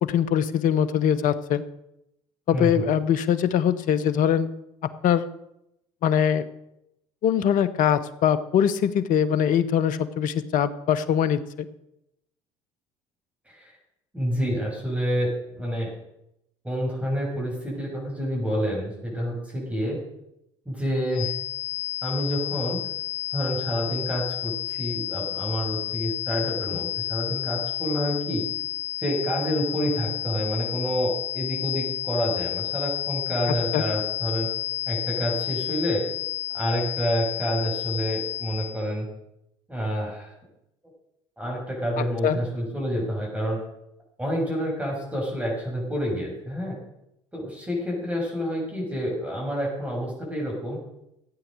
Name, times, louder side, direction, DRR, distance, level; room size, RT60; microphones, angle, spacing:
voice 1, 0.0-1.6 2.5-4.5 5.0-5.3 6.0-6.5 7.2-11.7 33.7-33.8 42.0-42.4, left 9 dB, 60° left, 14 dB, 1.1 m, -22 dB
voice 2, 2.5-2.9 13.5-13.7 14.1-15.9 16.6-20.0 20.6-21.3 22.0-22.8 23.3-28.4 29.0-34.5 34.9-36.0 36.5-39.0 39.7-40.3 41.4-43.6 44.2-46.8 47.3-50.8, equal, 10° right, -3 dB, 6.8 m, -28 dB
sound 1, 21.1-38.9, left 13 dB, 30° left, 6.1 m, -31 dB
15.0 x 9.0 x 6.6 m, 0.82 s
hypercardioid pair, 60°, 16 cm